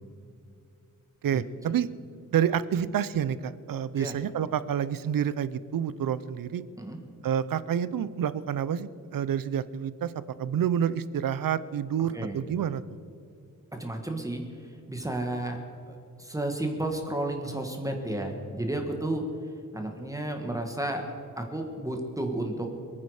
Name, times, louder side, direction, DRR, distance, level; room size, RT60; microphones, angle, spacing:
voice 1, 1.2-1.9 2.3-6.6 7.2-10.1 10.4-12.8, right 9 dB, 75° right, 16 dB, 0.7 m, -28 dB
voice 2, 13.7-15.6 15.9-19.3 19.7-22.7, right 1 dB, 10° right, 3 dB, 1.5 m, -32 dB
26.0 x 9.7 x 4.9 m, 2.6 s
wide cardioid pair, 165°, 34 cm